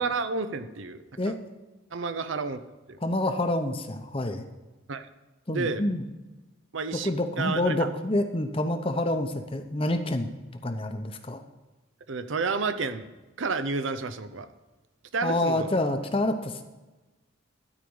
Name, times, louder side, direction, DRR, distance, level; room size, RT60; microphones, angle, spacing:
voice 1, 0.0-1.0 1.3-1.4 1.9-2.6 2.9-3.0 4.9-5.1 5.5-5.8 6.7-7.9 12.1-13.1 13.4-14.5 15.1-15.8, right 4 dB, 75° right, 11 dB, 0.7 m, -30 dB
voice 2, 3.0-4.4 5.5-6.0 6.9-10.3 10.6-11.4 15.2-16.6, left 1 dB, 25° left, 7 dB, 0.8 m, -27 dB
12.5 x 5.0 x 8.7 m, 1.1 s
head